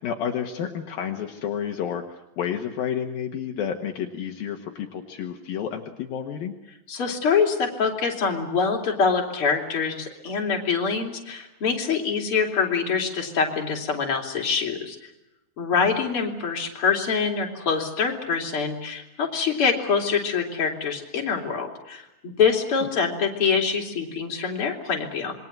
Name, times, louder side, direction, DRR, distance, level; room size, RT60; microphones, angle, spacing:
voice 1, 0.0-6.5 15.8-16.0 22.8-22.9, left 8 dB, 70° left, 3 dB, 3.3 m, -30 dB
voice 2, 6.9-15.0 15.6-25.3, left 5 dB, 35° left, 1 dB, 4.2 m, -25 dB
27.5 x 23.0 x 7.5 m, 0.93 s
omnidirectional pair, 4.4 m